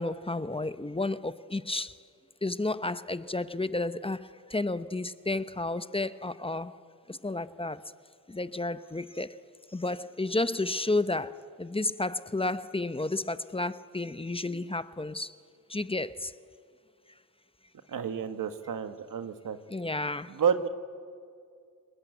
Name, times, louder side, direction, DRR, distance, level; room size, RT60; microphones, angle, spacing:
voice 1, 0.0-2.0 2.4-6.8 7.1-7.8 8.3-9.4 9.7-15.3 15.7-16.3 19.7-20.3, left 2 dB, 15° left, 0.8 m, -32 dB
voice 2, 17.9-19.6 20.3-20.7, right 7 dB, 85° right, 1.5 m, -30 dB
30.0 x 20.0 x 9.3 m
cardioid pair, 80°, 32 cm